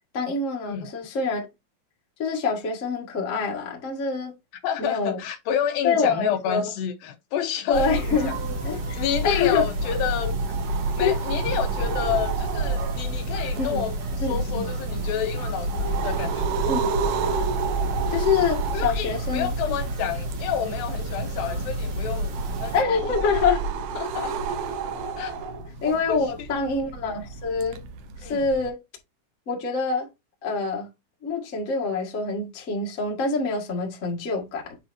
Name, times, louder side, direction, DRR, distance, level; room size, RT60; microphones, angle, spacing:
voice 1, 0.1-1.5 2.2-4.3 4.8-5.2 5.8-6.6 7.7-9.7 11.0-11.2 13.6-13.8 14.2-14.7 16.7-16.9 18.1-19.5 22.7-23.6 25.8-27.8 28.2-28.8 29.5-30.1 30.4-30.9 31.2-34.8, left 4 dB, 40° left, 1.1 m, -26 dB
voice 2, 4.6-8.3 9.0-10.3 11.0-13.9 14.3-16.8 18.7-22.3 22.6-22.9 23.2-23.3 24.0-24.6 25.2-25.4 25.9-26.2 28.2-28.5, left 9 dB, 80° left, 2.6 m, -29 dB
sound 1, 7.7-22.8, right 1 dB, 60° right, 4.0 m, -30 dB
sound 2, 10.0-28.7, right 5 dB, 80° right, 2.6 m, -31 dB
7.8 x 4.5 x 2.6 m
omnidirectional pair, 4.3 m